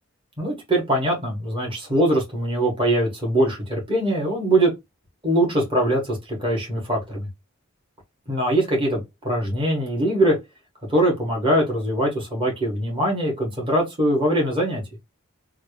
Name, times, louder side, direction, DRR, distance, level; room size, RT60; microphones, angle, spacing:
voice 1, 0.4-4.7 5.2-7.3 8.3-10.3 10.9-14.8, right 1 dB, 25° right, 1.4 m, -22 dB
3.1 x 2.4 x 3.2 m
head